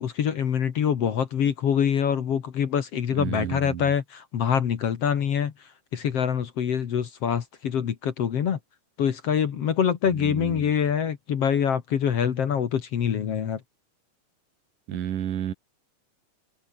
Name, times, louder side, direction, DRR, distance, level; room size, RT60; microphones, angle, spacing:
voice 1, 0.0-5.5 5.9-8.6 9.0-13.6, left 8 dB, 55° left, 2.3 m, -25 dB
voice 2, 3.1-3.8 10.1-10.7 14.9-15.5, right 10 dB, 70° right, 3.4 m, -31 dB
omnidirectional pair, 3.9 m